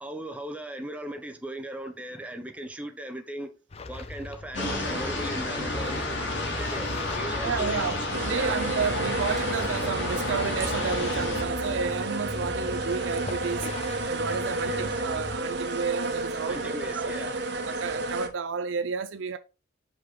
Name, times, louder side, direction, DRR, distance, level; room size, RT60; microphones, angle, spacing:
voice 1, 0.0-3.5 3.9-8.0 8.3-8.6 14.6-14.9 16.5-17.4, right 1 dB, 5° right, 0.7 m, -38 dB
sound 1, 3.7-15.4, left 2 dB, 35° left, 0.6 m, -40 dB
sound 2, 4.5-11.4, left 2 dB, 75° left, 2.7 m, -31 dB
voice 2, 7.4-13.7 14.1-17.1 17.7-19.4, right 5 dB, 85° right, 0.5 m, -31 dB
sound 3, 8.1-18.3, right 2 dB, 65° right, 1.2 m, -31 dB
5.8 x 5.3 x 4.0 m
head